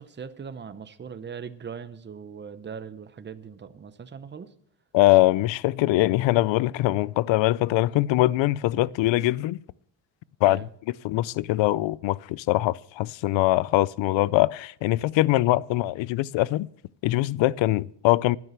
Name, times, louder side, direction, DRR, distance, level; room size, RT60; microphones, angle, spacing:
voice 1, 0.0-4.5 10.4-10.7, right 6 dB, 25° right, 0.8 m, -40 dB
voice 2, 4.9-9.6 10.4-10.7 11.0-16.7 17.0-18.4, left 17 dB, 85° left, 0.5 m, -22 dB
12.0 x 9.9 x 7.3 m
cardioid pair, 130°, 44 cm